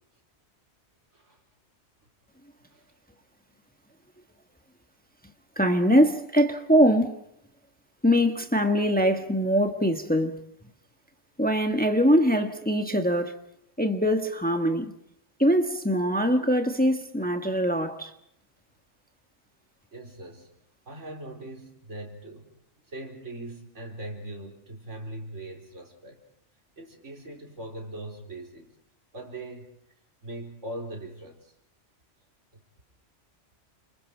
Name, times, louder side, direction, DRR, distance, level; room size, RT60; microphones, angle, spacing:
voice 1, 5.6-7.1 8.0-10.4 11.4-13.4 13.8-14.9 15.4-18.1, equal, 5° left, 1.4 m, -23 dB
voice 2, 19.9-20.5 20.9-22.5 22.9-26.2 26.8-28.7 29.1-29.7 30.2-31.5 32.5-32.6, right 1 dB, 80° right, 4.4 m, -40 dB
29.0 x 27.5 x 4.6 m
omnidirectional pair, 1.2 m